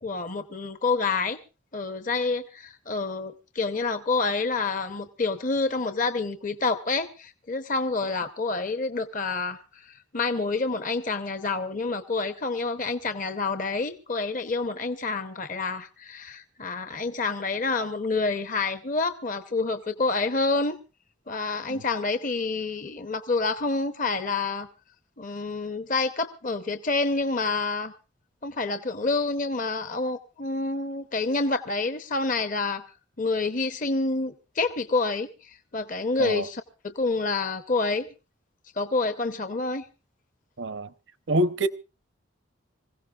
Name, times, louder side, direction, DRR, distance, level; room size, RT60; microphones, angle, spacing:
voice 1, 0.0-1.4 1.7-20.8 21.3-24.7 25.2-27.9 28.4-32.8 33.2-38.1 38.8-39.8, left 3 dB, 40° left, 0.8 m, -28 dB
voice 2, 40.6-40.9 41.3-41.7, right 1 dB, 65° right, 0.8 m, -26 dB
25.5 x 16.5 x 2.4 m
head